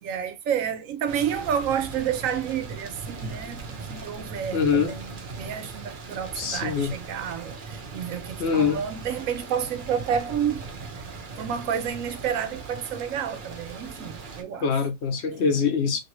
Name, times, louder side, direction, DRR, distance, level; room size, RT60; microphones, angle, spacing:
voice 1, 0.0-10.7 11.4-14.7, right 8 dB, 80° right, 1.0 m, -30 dB
sound 1, 1.1-14.4, right 4 dB, 50° right, 0.7 m, -39 dB
voice 2, 4.5-4.9 6.4-6.9 8.4-8.8 14.6-16.0, left 6 dB, 60° left, 0.9 m, -24 dB
2.8 x 2.8 x 2.9 m
omnidirectional pair, 1.4 m